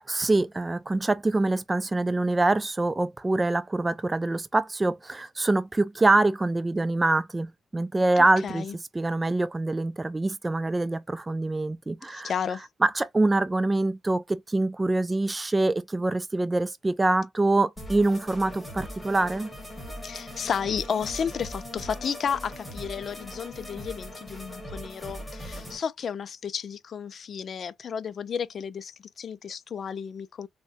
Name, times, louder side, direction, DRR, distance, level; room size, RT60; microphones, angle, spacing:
voice 1, 0.0-8.7 8.9-12.3 12.8-19.5, right 2 dB, 20° right, 0.4 m, -25 dB
voice 2, 8.2-8.8 12.1-12.7 20.0-30.5, left 7 dB, 50° left, 0.3 m, -32 dB
sound 1, 17.8-25.8, equal, 10° left, 1.7 m, -40 dB
3.6 x 2.1 x 2.7 m
cardioid pair, 90°, 0 cm